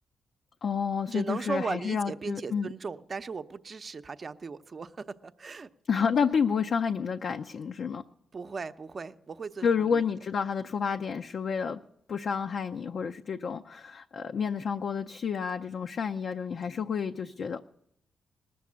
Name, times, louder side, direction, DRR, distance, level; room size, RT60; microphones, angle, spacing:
voice 1, 0.6-2.7 5.9-8.0 9.6-11.8 12.1-17.6, left 6 dB, 65° left, 0.5 m, -30 dB
voice 2, 1.1-5.7 8.3-10.0, right 4 dB, 45° right, 0.7 m, -37 dB
19.5 x 7.0 x 8.5 m
cardioid pair, 60°, 0 cm